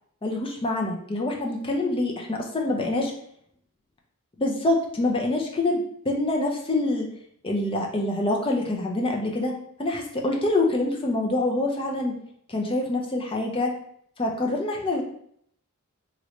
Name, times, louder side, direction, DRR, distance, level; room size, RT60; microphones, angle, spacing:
voice 1, 0.2-3.1 4.4-7.1 7.4-9.5 9.8-12.1 12.5-13.7 14.2-15.0, left 2 dB, 25° left, 1 dB, 0.5 m, -25 dB
3.0 x 2.5 x 3.1 m, 0.68 s
head